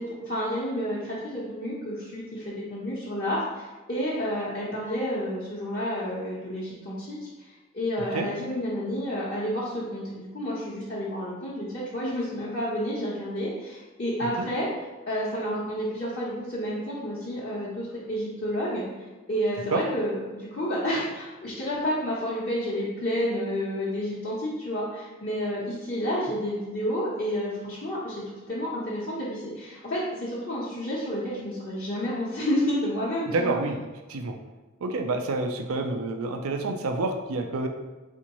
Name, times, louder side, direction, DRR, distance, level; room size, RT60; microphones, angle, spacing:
voice 1, 0.0-7.3 7.7-14.7 15.1-33.5, equal, 45° left, -9 dB, 0.9 m, -30 dB
voice 2, 33.3-33.8 34.1-34.4 34.8-37.7, right 3 dB, 80° right, 5 dB, 0.5 m, -28 dB
4.3 x 3.6 x 3.0 m, 1.2 s
head